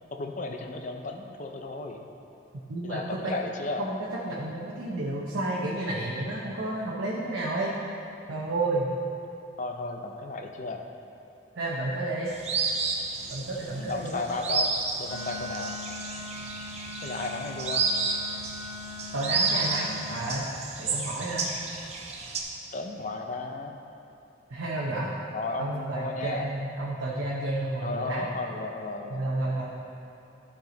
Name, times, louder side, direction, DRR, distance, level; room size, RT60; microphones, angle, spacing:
voice 1, 0.1-2.0 2.8-3.9 9.6-10.8 13.8-14.7 15.0-15.8 17.0-17.8 22.7-23.8 25.3-26.5 27.8-29.3, left 3 dB, 40° left, 3 dB, 0.5 m, -34 dB
voice 2, 2.7-3.3 3.8-4.0 4.2-7.8 8.3-8.9 11.5-12.3 13.3-14.2 19.1-20.5 20.8-21.5 24.5-25.1 25.6-28.3 29.1-29.7, right 2 dB, 90° right, -5 dB, 0.9 m, -31 dB
sound 1, 12.3-22.4, right 4 dB, 35° right, 0.7 m, -31 dB
Wind instrument woodwind instrument, 15.1-20.2, left 2 dB, 80° left, 1.5 m, -41 dB
12.0 x 4.8 x 4.0 m, 2.8 s
head